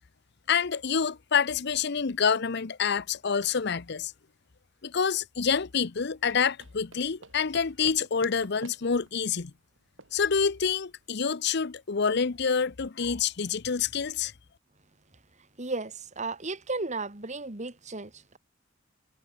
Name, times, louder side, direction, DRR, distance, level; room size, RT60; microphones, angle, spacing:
voice 1, 0.5-4.1 4.8-9.5 10.1-14.3, left 6 dB, 60° left, 0.7 m, -27 dB
sound 1, 5.9-11.1, right 3 dB, 90° right, 6.0 m, -50 dB
voice 2, 15.6-18.4, right 3 dB, 40° right, 2.2 m, -34 dB
head